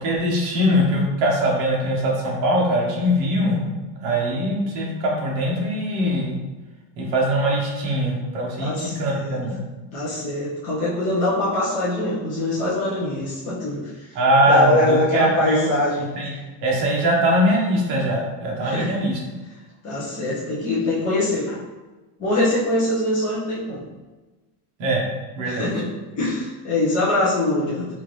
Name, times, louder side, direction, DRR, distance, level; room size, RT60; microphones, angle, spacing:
voice 1, 0.0-3.7 4.0-6.4 7.0-9.6 14.1-15.7 16.2-16.3 16.6-19.2 24.8-25.1 25.4-25.7, equal, 45° right, -2 dB, 0.9 m, -21 dB
voice 2, 8.6-9.4 9.9-14.2 14.5-16.4 18.6-18.9 19.8-21.6 22.2-23.8 25.4-25.9 26.1-27.9, left 1 dB, 15° left, -10 dB, 0.7 m, -23 dB
3.6 x 2.6 x 3.1 m, 1.2 s
cardioid pair, 175°, 46 cm